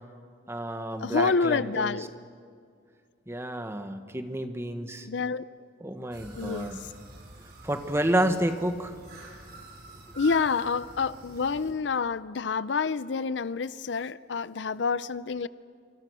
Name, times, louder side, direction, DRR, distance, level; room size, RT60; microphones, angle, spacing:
voice 1, 0.5-2.1 3.3-5.1 5.8-6.8 7.6-9.0, right 1 dB, 15° right, 8 dB, 1.3 m, -30 dB
voice 2, 1.0-2.1 5.1-5.5 6.4-6.7 10.1-15.5, left 5 dB, 75° left, 17 dB, 0.6 m, -28 dB
sound 1, 6.1-11.7, right 2 dB, 60° right, 5.1 m, -47 dB
26.0 x 25.5 x 6.3 m, 2.1 s
head